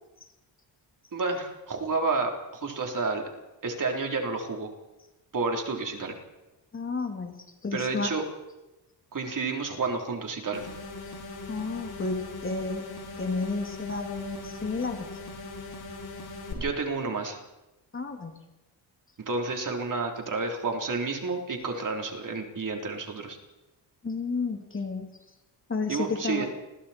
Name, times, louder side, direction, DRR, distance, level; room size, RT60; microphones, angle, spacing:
voice 1, 1.1-3.2 3.6-4.7 5.3-6.1 7.7-8.2 9.1-10.7 16.5-17.4 19.3-23.4 25.9-26.5, right 3 dB, 45° right, 2 dB, 3.8 m, -30 dB
voice 2, 6.7-8.1 11.5-15.1 17.9-18.4 24.0-25.2 25.7-26.4, left 3 dB, 30° left, 4 dB, 2.5 m, -32 dB
sound 1, 10.5-16.5, left 3 dB, 60° left, 5.5 m, -40 dB
29.5 x 22.0 x 4.4 m, 1.0 s
cardioid pair, 105°, 44 cm